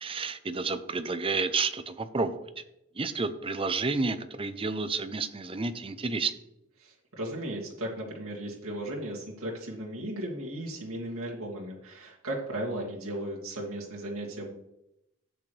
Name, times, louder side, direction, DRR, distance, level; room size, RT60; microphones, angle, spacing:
voice 1, 0.0-2.4 3.0-6.3, right 4 dB, 25° right, 11 dB, 0.6 m, -30 dB
voice 2, 6.8-14.5, right 1 dB, 80° right, -4 dB, 2.5 m, -36 dB
12.5 x 8.4 x 3.3 m, 0.84 s
head